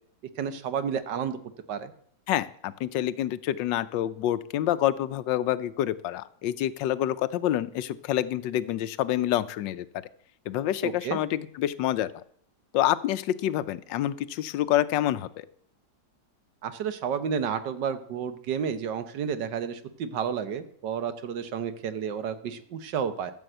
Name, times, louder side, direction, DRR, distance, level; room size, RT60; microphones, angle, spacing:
voice 1, 0.4-1.4 1.7-1.9 10.8-11.2 16.6-23.3, right 7 dB, 75° right, 11 dB, 1.5 m, -31 dB
voice 2, 2.3-9.9 10.5-12.1 12.7-15.5, left 12 dB, 80° left, 15 dB, 1.3 m, -27 dB
14.0 x 6.1 x 7.8 m, 0.67 s
omnidirectional pair, 2.0 m